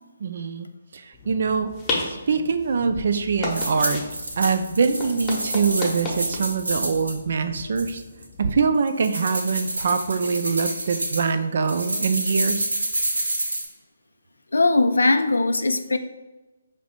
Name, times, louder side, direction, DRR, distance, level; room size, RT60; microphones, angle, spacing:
voice 1, 0.2-1.7 2.1-4.0 4.4-8.0 8.4-12.7, right 5 dB, 55° right, 9 dB, 0.4 m, -24 dB
sound 1, 1.1-8.7, left 2 dB, 20° left, 0.8 m, -34 dB
sound 2, 3.5-7.1 7.8-8.2 8.9-11.3 11.7-13.6, right 1 dB, 80° right, 0.9 m, -28 dB
voice 2, 14.5-16.0, left 2 dB, 80° left, 9 dB, 0.3 m, -20 dB
4.9 x 2.7 x 3.4 m, 1.1 s
figure-of-eight pair, 145°, 0 cm